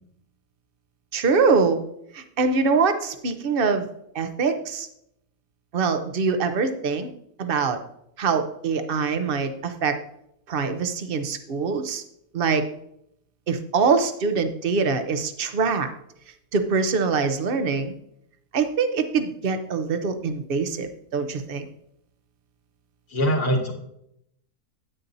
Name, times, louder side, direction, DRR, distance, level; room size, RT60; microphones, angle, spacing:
voice 1, 1.1-1.8 2.1-3.9 4.1-4.9 5.7-7.1 7.4-7.8 8.2-10.0 10.5-12.0 12.3-12.6 13.5-15.9 16.5-17.9 18.5-21.7, right 5 dB, 45° right, 8 dB, 0.7 m, -24 dB
voice 2, 23.1-23.7, equal, 65° left, -2 dB, 2.0 m, -22 dB
9.8 x 9.2 x 2.7 m, 0.74 s
omnidirectional pair, 1.8 m